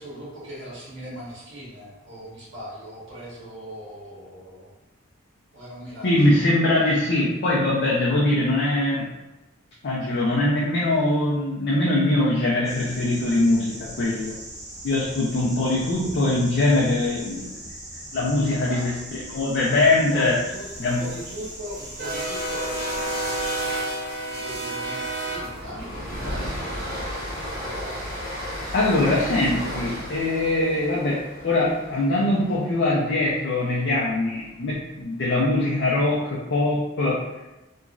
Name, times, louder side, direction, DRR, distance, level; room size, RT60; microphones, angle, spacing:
voice 1, 0.0-4.7 5.5-6.4 18.5-18.9 19.7-28.2 28.5-29.2, equal, 75° right, -7 dB, 1.4 m, -40 dB
voice 2, 6.0-9.1 9.8-14.3 14.8-17.5 18.1-20.4 20.8-21.0 28.7-37.3, left 2 dB, 60° left, -5 dB, 0.5 m, -22 dB
sound 1, 12.6-23.6, right 1 dB, 15° right, 0.7 m, -40 dB
sound 2, 20.7-32.9, right 1 dB, 50° right, 1.3 m, -32 dB
2.9 x 2.5 x 2.3 m, 1.0 s
head